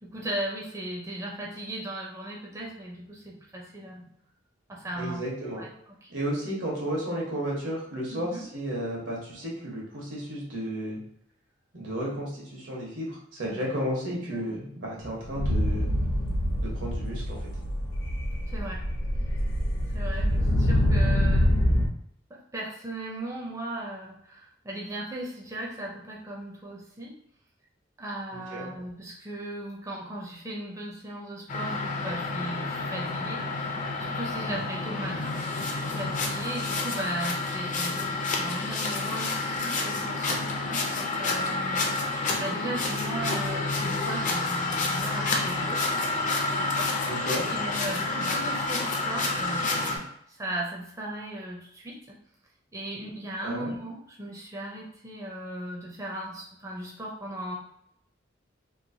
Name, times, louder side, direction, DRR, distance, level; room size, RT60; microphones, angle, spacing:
voice 1, 0.0-4.1 4.7-5.3 5.6-5.7 6.0-6.1 8.1-8.5 13.4-13.7 14.3-14.6 18.5-18.9 19.9-21.6 22.3-27.1 28.0-33.7 34.0-41.8 42.4-45.8 46.2-46.9 47.5-52.2 52.7-57.6, right 1 dB, 15° right, -2 dB, 0.5 m, -37 dB
voice 2, 5.0-5.6 6.1-11.0 11.7-15.9 16.6-17.5 28.3-28.7 47.0-47.4 53.4-53.7, equal, 85° right, -3 dB, 1.2 m, -33 dB
sound 1, 15.3-21.9, equal, 90° left, 0.5 m, -25 dB
sound 2, 31.5-50.0, left 3 dB, 40° left, 0.5 m, -29 dB
3.0 x 2.5 x 2.6 m, 0.72 s
head